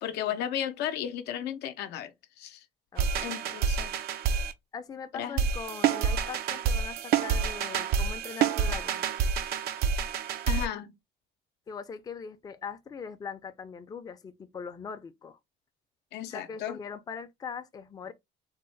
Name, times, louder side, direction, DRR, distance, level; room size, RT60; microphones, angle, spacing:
voice 1, 0.0-2.7 3.2-4.0 5.1-5.4 10.5-11.0 16.1-16.8, left 10 dB, 80° left, 0.5 m, -34 dB
voice 2, 2.9-3.6 4.7-9.0 11.7-15.4 16.3-18.1, left 6 dB, 20° left, 0.4 m, -41 dB
sound 1, 3.0-4.5 5.4-10.7, right 6 dB, 65° right, 0.4 m, -28 dB
3.5 x 2.1 x 3.1 m
cardioid pair, 110°, 17 cm